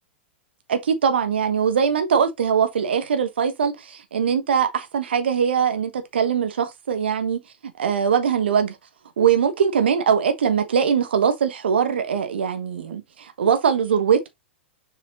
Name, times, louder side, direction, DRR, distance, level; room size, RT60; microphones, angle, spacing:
voice 1, 0.7-8.8 9.2-14.3, right 7 dB, 70° right, 1.4 m, -21 dB
7.0 x 4.9 x 3.0 m
figure-of-eight pair, 105°, 6 cm